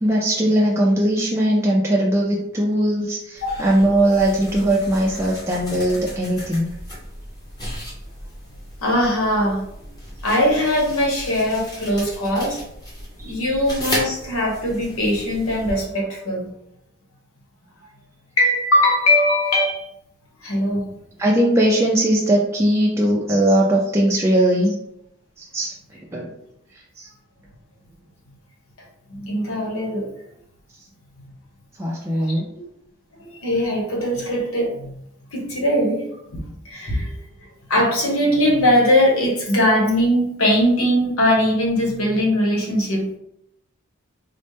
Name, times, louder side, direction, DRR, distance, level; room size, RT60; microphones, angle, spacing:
voice 1, 0.0-6.7 13.2-13.3 21.2-24.7 25.4-25.8 26.1-26.3 27.0-27.1 31.8-32.5, right 1 dB, 10° right, -3 dB, 0.3 m, -19 dB
sound 1, 3.4-15.7, equal, 20° left, 0.9 m, -35 dB
voice 2, 8.8-9.6 10.2-12.6 13.2-16.5 18.4-19.8 20.4-20.9 29.1-30.1 32.2-32.3 32.5-32.6 33.2-34.9 35.3-36.0 36.3-37.1 37.7-43.1, left 1 dB, 85° left, -1 dB, 1.1 m, -20 dB
4.1 x 2.1 x 3.3 m, 0.77 s
head